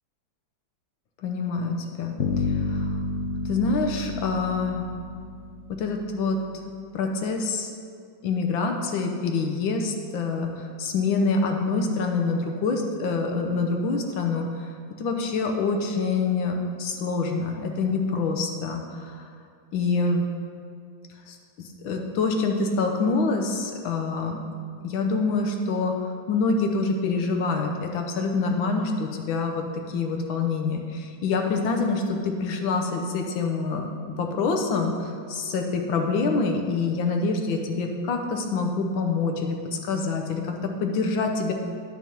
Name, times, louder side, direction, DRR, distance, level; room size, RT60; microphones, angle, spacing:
voice 1, 1.2-2.1 2.7-2.9 3.4-4.8 5.7-6.4 6.9-7.7 8.2-14.5 15.0-19.3 19.7-20.2 21.3-21.4 21.8-24.4 24.8-25.9 26.3-29.6 29.9-33.8 34.2-41.5, left 4 dB, 90° left, 3 dB, 1.6 m, -26 dB
sound 1, 2.2-6.2, left 3 dB, 60° left, 0.7 m, -30 dB
10.5 x 5.2 x 4.4 m, 2.2 s
omnidirectional pair, 2.1 m